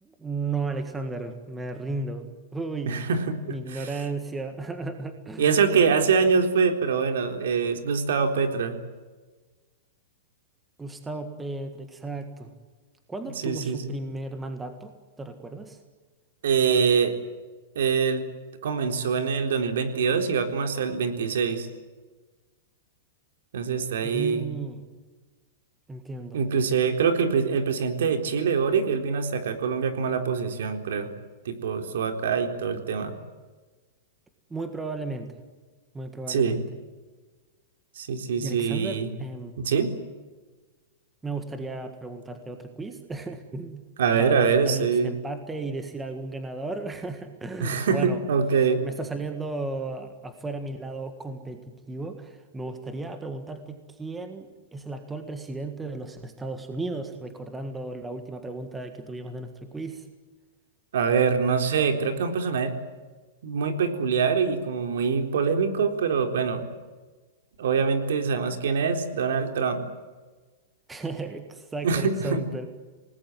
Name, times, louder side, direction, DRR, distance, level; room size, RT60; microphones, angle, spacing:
voice 1, 0.0-2.3 2.5-3.1 3.5-5.5 10.8-12.5 13.1-14.9 15.2-15.8 24.0-24.9 25.9-26.4 34.5-35.4 35.9-36.6 38.3-39.6 41.2-43.8 44.2-48.2 48.8-60.1 70.9-72.7, right 3 dB, 5° right, 7 dB, 1.7 m, -34 dB
voice 2, 2.9-3.9 5.4-8.8 13.4-13.9 16.4-17.1 17.8-18.2 18.6-21.7 23.5-24.5 26.3-31.1 31.5-33.1 36.3-36.6 38.0-39.1 39.6-39.9 44.0-45.1 47.6-48.8 60.9-62.7 63.4-66.6 67.6-69.8 71.8-72.4, right 6 dB, 75° right, 6 dB, 3.9 m, -24 dB
29.0 x 19.5 x 9.2 m, 1.3 s
supercardioid pair, 175°, 0 cm